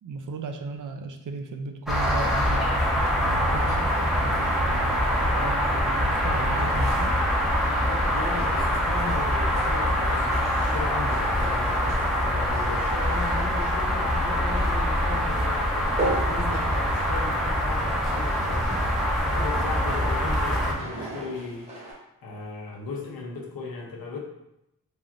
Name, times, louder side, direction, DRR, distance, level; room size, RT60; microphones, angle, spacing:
voice 1, 0.0-7.2, right 4 dB, 60° right, 5 dB, 0.4 m, -36 dB
sound 1, 1.9-20.7, equal, ahead, 0.6 m, -24 dB
sound 2, 3.0-21.9, right 1 dB, 20° right, 0.9 m, -40 dB
voice 2, 7.6-15.9 16.3-18.9 19.2-21.9 22.2-24.2, left 4 dB, 85° left, 0 dB, 0.7 m, -36 dB
3.3 x 2.6 x 2.3 m, 0.85 s
wide cardioid pair, 80°, 35 cm